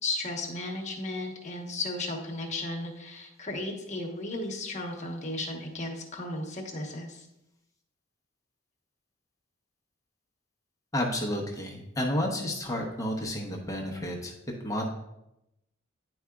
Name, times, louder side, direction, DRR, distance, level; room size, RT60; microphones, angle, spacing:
voice 1, 0.0-7.3, left 2 dB, 35° left, 0 dB, 1.1 m, -35 dB
voice 2, 10.9-14.3 14.6-14.9, left 1 dB, 15° left, 0 dB, 0.8 m, -31 dB
10.0 x 4.8 x 2.3 m, 0.87 s
head